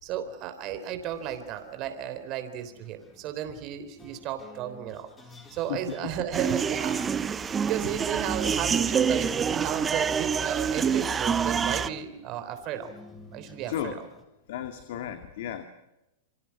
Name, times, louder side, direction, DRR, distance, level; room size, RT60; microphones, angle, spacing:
voice 1, 0.0-5.1 5.5-7.0 7.6-12.9 13.3-14.1, right 9 dB, 40° right, 9 dB, 3.6 m, -34 dB
sound 1, 1.0-1.6 2.6-14.2, left 2 dB, 15° left, 4.0 m, -51 dB
sound 2, 6.3-11.9, right 7 dB, 15° right, 0.8 m, -26 dB
voice 2, 13.7-14.0 14.5-15.6, left 10 dB, 65° left, 7 dB, 2.2 m, -33 dB
28.0 x 24.0 x 6.0 m, 0.92 s
hypercardioid pair, 135°, 0 cm